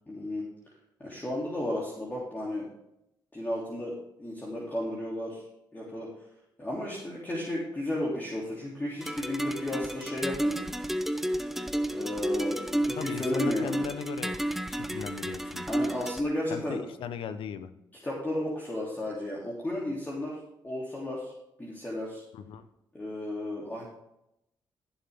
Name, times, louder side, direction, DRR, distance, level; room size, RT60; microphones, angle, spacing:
voice 1, 0.1-0.4 1.0-2.7 3.3-5.4 5.7-6.1 6.6-10.6 11.9-13.7 15.7-16.8 18.0-20.4 20.6-21.3 21.6-22.2 22.9-23.8, left 1 dB, 20° left, -5 dB, 3.1 m, -33 dB
sound 1, 9.0-16.2, right 1 dB, 5° right, 0.9 m, -31 dB
voice 2, 13.0-14.4 14.7-15.7 16.5-17.7 22.3-22.6, left 7 dB, 75° left, 11 dB, 1.0 m, -38 dB
14.5 x 7.3 x 3.7 m, 0.82 s
cardioid pair, 70°, 9 cm